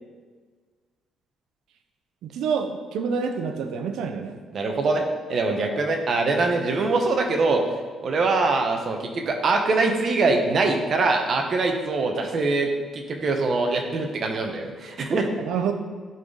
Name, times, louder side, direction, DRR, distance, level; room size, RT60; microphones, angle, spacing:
voice 1, 2.2-4.4 15.5-15.7, right 6 dB, 85° right, 7 dB, 0.7 m, -27 dB
voice 2, 4.5-7.6 8.0-15.3, right 3 dB, 40° right, 3 dB, 0.9 m, -23 dB
11.0 x 4.1 x 3.8 m, 1.5 s
cardioid pair, 145°, 0 cm